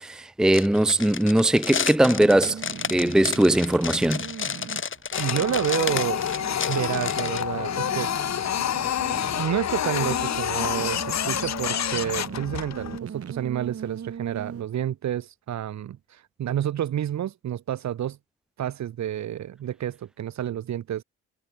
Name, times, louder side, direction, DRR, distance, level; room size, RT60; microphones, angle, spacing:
voice 1, 0.0-2.6 2.9-4.3, right 1 dB, ahead, 0.8 m, -20 dB
sound 1, 0.5-7.4, left 7 dB, 40° left, 2.4 m, -31 dB
sound 2, 2.1-14.6, right 7 dB, 50° right, 5.0 m, -39 dB
Printer, 5.1-13.0, left 10 dB, 60° left, 2.7 m, -28 dB
voice 2, 5.2-6.2 6.7-8.1 9.4-18.2 18.6-21.0, right 11 dB, 65° right, 2.4 m, -29 dB
cardioid pair, 90°, 30 cm